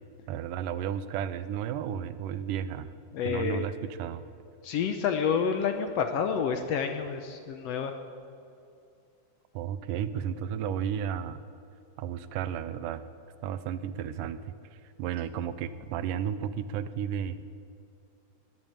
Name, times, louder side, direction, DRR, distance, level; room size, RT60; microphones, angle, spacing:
voice 1, 0.3-2.9 3.2-4.2 9.5-11.4 12.0-13.0 13.4-17.4, right 9 dB, 90° right, 13 dB, 2.2 m, -33 dB
voice 2, 3.1-3.6 4.6-7.9, left 6 dB, 70° left, 7 dB, 1.5 m, -29 dB
20.0 x 7.9 x 8.7 m, 2.5 s
omnidirectional pair, 3.7 m